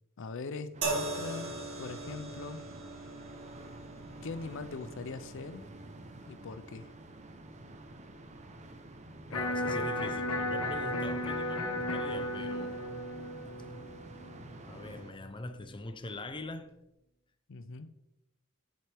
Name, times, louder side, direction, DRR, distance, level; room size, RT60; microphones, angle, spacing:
voice 1, 0.2-1.5 1.8-2.6 4.2-5.7 6.3-6.9 17.5-17.9, left 4 dB, 65° left, 0.5 m, -41 dB
sound 1, 0.7-15.1, right 1 dB, 35° right, 0.8 m, -49 dB
sound 2, 0.8-14.1 15.1-15.3, right 3 dB, 90° right, 1.9 m, -43 dB
Electric guitar, 9.3-15.4, left 1 dB, 90° left, 1.3 m, -35 dB
voice 2, 9.3-12.8 14.6-16.8, left 2 dB, 25° left, 0.7 m, -43 dB
10.5 x 7.5 x 3.5 m
head